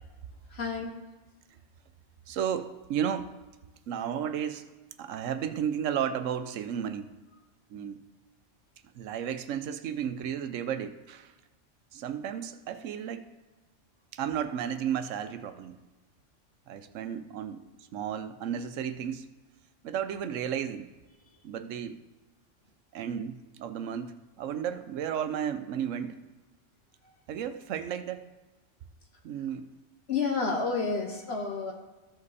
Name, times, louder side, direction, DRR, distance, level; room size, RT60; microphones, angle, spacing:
voice 1, 0.5-1.0 30.1-31.7, left 4 dB, 60° left, 1 dB, 1.3 m, -30 dB
voice 2, 2.3-3.3 3.9-4.6 5.0-7.1 7.7-8.0 8.9-11.3 11.9-13.3 14.1-15.7 16.7-17.6 17.9-19.3 19.8-20.9 21.4-22.0 22.9-26.2 27.3-28.3 29.2-29.7, right 8 dB, 90° right, 10 dB, 1.0 m, -33 dB
14.0 x 5.2 x 4.1 m, 1.2 s
omnidirectional pair, 1.3 m